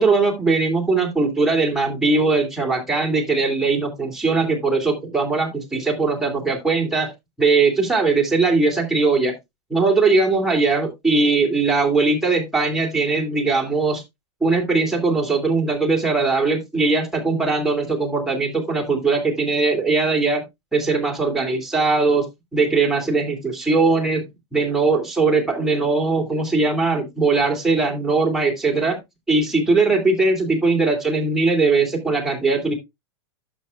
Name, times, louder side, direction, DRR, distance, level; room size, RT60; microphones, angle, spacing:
voice 1, 0.0-7.1 7.4-9.3 9.7-14.0 14.4-20.4 20.7-22.3 22.5-24.2 24.5-29.0 29.3-32.7, right 3 dB, ahead, -1 dB, 2.7 m, -20 dB
11.0 x 7.0 x 2.4 m, 0.20 s
hypercardioid pair, 115°, 15 cm